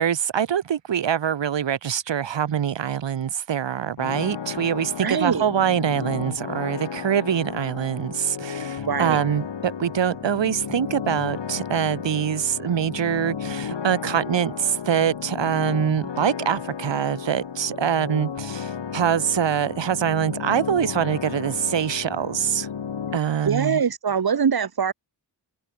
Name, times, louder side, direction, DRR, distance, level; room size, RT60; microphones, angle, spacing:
voice 1, 0.0-22.7 23.1-23.8, right 9 dB, 80° right, 1.4 m, -24 dB
sound 1, 4.0-23.2, left 7 dB, 75° left, 3.0 m, -33 dB
voice 2, 5.0-5.5 8.9-9.2 23.4-24.9, right 6 dB, 55° right, 1.9 m, -23 dB
wide cardioid pair, 105°, 43 cm